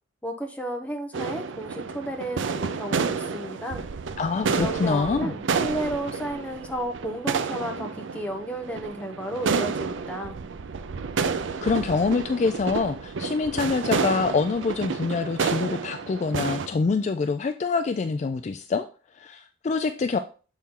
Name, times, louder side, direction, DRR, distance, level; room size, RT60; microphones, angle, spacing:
voice 1, 0.2-3.9 4.5-10.4, right 1 dB, 5° left, 3 dB, 0.8 m, -33 dB
sound 1, 1.1-16.7, right 5 dB, 75° right, 0.5 m, -30 dB
voice 2, 4.2-5.3 11.6-18.9 19.1-20.2, left 4 dB, 35° left, 8 dB, 0.3 m, -25 dB
7.3 x 4.3 x 3.7 m, 0.37 s
head